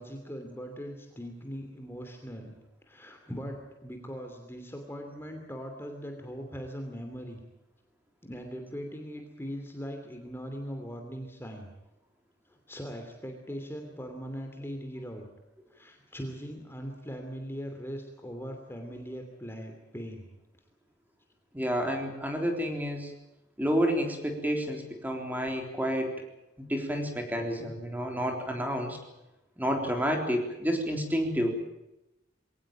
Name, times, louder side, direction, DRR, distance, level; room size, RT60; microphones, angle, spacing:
voice 1, 0.0-2.5 2.9-7.4 8.2-11.7 12.5-15.3 15.7-20.3, equal, 10° left, 4 dB, 2.8 m, -40 dB
voice 2, 21.5-23.1 23.6-26.1 26.6-29.0 29.6-31.5, equal, 10° right, 3 dB, 3.6 m, -30 dB
22.5 x 18.0 x 8.8 m, 0.92 s
head